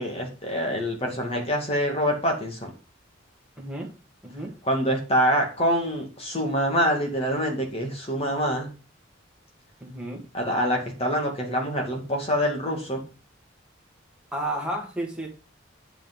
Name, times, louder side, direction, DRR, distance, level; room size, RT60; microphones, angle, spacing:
voice 1, 0.0-2.7 4.6-8.7 10.3-13.0, equal, 30° left, 0 dB, 2.5 m, -25 dB
voice 2, 3.6-3.9 4.2-4.5 9.8-10.2 14.3-15.3, right 1 dB, 5° right, -1 dB, 2.5 m, -32 dB
9.1 x 5.5 x 5.4 m, 0.34 s
head